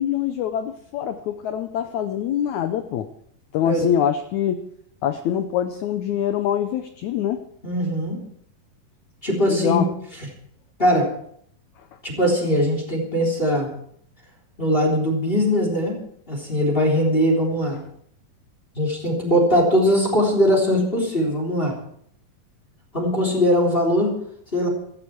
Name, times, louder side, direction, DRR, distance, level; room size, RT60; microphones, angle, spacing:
voice 1, 0.0-3.1 3.5-4.7 5.0-7.5 9.5-9.9, left 10 dB, 85° left, 9 dB, 1.6 m, -24 dB
voice 2, 7.6-8.2 9.2-9.8 10.8-11.1 12.0-13.7 14.6-16.0 16.3-17.8 18.7-21.7 22.9-24.1 24.5-24.7, equal, 15° left, 0 dB, 3.3 m, -20 dB
16.0 x 14.0 x 4.6 m, 0.66 s
omnidirectional pair, 4.3 m